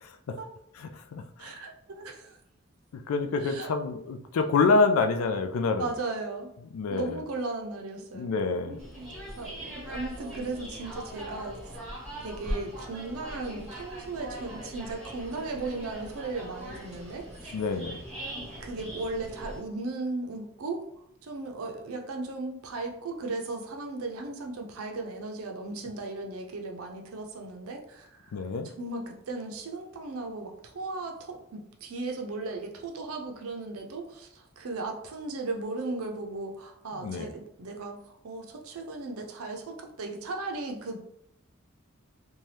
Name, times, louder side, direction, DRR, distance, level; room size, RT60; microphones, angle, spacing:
voice 1, 0.0-0.4 0.8-1.5 2.9-5.9 6.7-7.2 8.1-8.8 17.5-18.0 28.3-28.7 37.0-37.3, left 4 dB, 80° left, 7 dB, 0.3 m, -27 dB
voice 2, 1.4-2.4 3.4-3.7 5.7-6.5 6.9-8.3 8.6-11.6 12.2-17.5 18.3-20.9 21.2-28.3 28.6-41.0, right 3 dB, 80° right, 3 dB, 0.5 m, -36 dB
sound 1, 8.8-19.6, right 1 dB, ahead, 1.1 m, -40 dB
2.7 x 2.2 x 3.2 m, 0.76 s
head